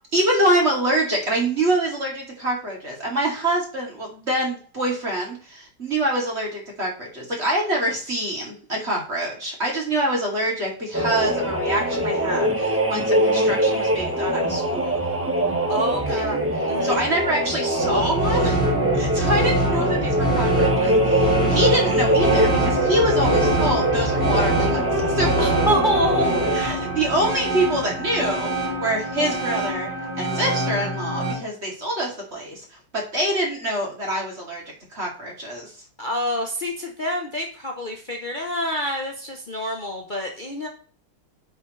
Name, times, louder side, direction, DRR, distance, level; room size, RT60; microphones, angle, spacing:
voice 1, 0.1-15.0 16.1-18.6 18.9-25.4 26.5-29.9 30.2-34.6 34.9-35.7, right 1 dB, 30° right, -2 dB, 2.8 m, -25 dB
sound 1, 10.9-26.6, right 1 dB, 10° right, 0.9 m, -23 dB
voice 2, 15.7-16.3 16.7-17.0 25.4-26.4 36.0-40.7, equal, 70° left, 2 dB, 0.4 m, -26 dB
sound 2, 17.8-31.3, right 2 dB, 55° right, 4.7 m, -24 dB
9.7 x 5.6 x 3.2 m, 0.41 s
omnidirectional pair, 2.3 m